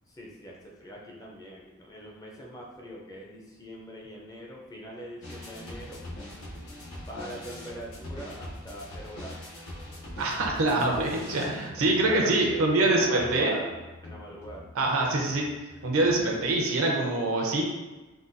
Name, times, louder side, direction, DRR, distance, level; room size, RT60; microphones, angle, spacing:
voice 1, 0.1-6.1 7.0-9.4 11.5-12.4 12.9-13.7 14.0-14.7, equal, 15° left, -2 dB, 0.4 m, -41 dB
sound 1, 5.2-16.6, left 1 dB, 85° left, 0.8 m, -43 dB
voice 2, 10.2-13.6 14.7-15.4 15.8-17.6, right 2 dB, 75° right, 0 dB, 0.6 m, -25 dB
3.8 x 2.2 x 2.5 m, 1.2 s
head